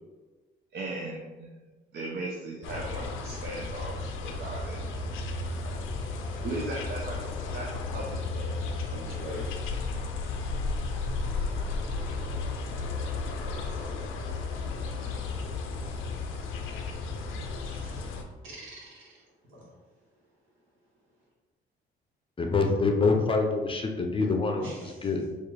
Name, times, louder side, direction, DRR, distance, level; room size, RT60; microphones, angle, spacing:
voice 1, 0.7-1.5 1.9-4.8 6.4-7.2 7.5-9.5, right 2 dB, 55° right, -2 dB, 0.6 m, -38 dB
sound 1, 2.6-18.2, left 3 dB, 90° left, 0.5 m, -33 dB
voice 2, 8.9-9.4 15.0-15.1 17.5-18.1 18.4-19.2 19.5-19.6 24.6-24.9, equal, 80° right, -4 dB, 1.3 m, -43 dB
voice 3, 22.4-25.4, left 3 dB, 25° left, 3 dB, 0.5 m, -26 dB
4.3 x 2.5 x 3.2 m, 1.3 s
cardioid pair, 90°, 20 cm